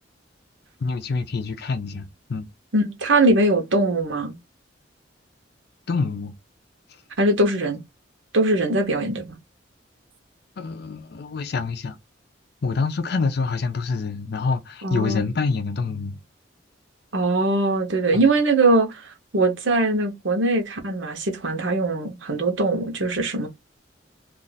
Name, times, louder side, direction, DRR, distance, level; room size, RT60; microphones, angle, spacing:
voice 1, 0.8-2.5 5.9-6.3 10.6-12.0 12.6-16.2 18.1-18.2, left 4 dB, 60° left, 0.5 m, -26 dB
voice 2, 2.7-4.4 7.2-7.8 8.3-9.3 14.8-15.3 17.1-19.0 19.3-23.5, right 2 dB, 90° right, 0.9 m, -21 dB
2.5 x 2.5 x 3.9 m
head